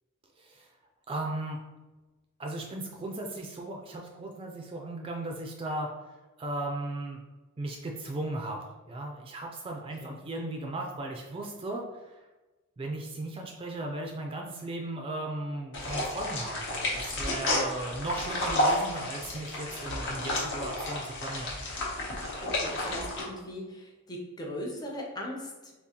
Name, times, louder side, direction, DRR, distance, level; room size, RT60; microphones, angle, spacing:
voice 1, 0.4-0.7 1.1-1.6 2.4-5.9 6.4-7.2 7.6-12.2 12.8-21.5, right 2 dB, 25° right, 1 dB, 0.3 m, -36 dB
sound 1, 15.7-23.2, left 1 dB, 60° left, 0.8 m, -31 dB
voice 2, 22.5-25.7, left 1 dB, 20° left, -1 dB, 0.6 m, -39 dB
3.6 x 2.3 x 2.8 m, 1.1 s
head